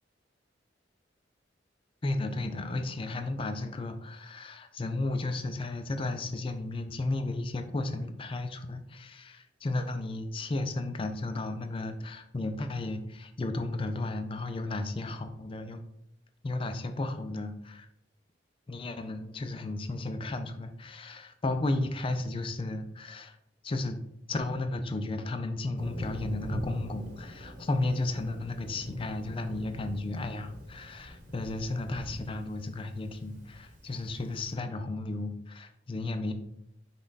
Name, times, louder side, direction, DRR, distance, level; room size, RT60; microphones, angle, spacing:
voice 1, 2.0-15.8 16.4-17.9 18.7-23.4 23.6-24.0 24.3-36.3, left 2 dB, 30° left, 7 dB, 0.4 m, -34 dB
Thunder, 25.8-34.5, equal, 45° right, 1.1 m, -42 dB
5.3 x 2.3 x 3.9 m, 0.74 s
head